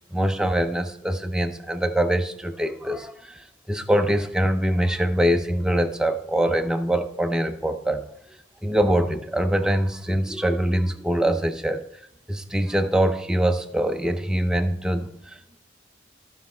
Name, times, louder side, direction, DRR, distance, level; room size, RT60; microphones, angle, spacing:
voice 1, 0.1-8.0 8.3-11.8 12.3-15.6, right 1 dB, 5° right, 6 dB, 0.6 m, -24 dB
14.0 x 5.3 x 4.3 m, 0.73 s
head